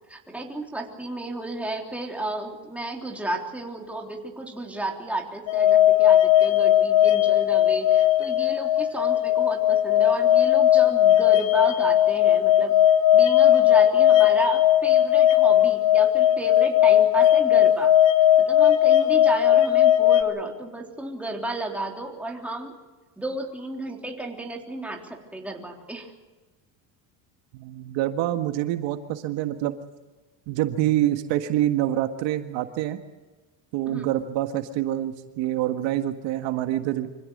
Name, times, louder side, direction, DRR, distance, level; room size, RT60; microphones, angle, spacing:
voice 1, 0.1-12.8 13.1-17.9 18.5-22.7 23.2-26.1 33.9-34.1, right 1 dB, 5° right, 0 dB, 3.6 m, -32 dB
sound 1, 5.5-20.2, left 11 dB, 70° left, 2.9 m, -18 dB
voice 2, 27.5-29.7 30.5-33.0 33.7-37.1, right 13 dB, 70° right, 7 dB, 1.7 m, -26 dB
25.5 x 16.0 x 8.6 m, 1.2 s
cardioid pair, 135°, 46 cm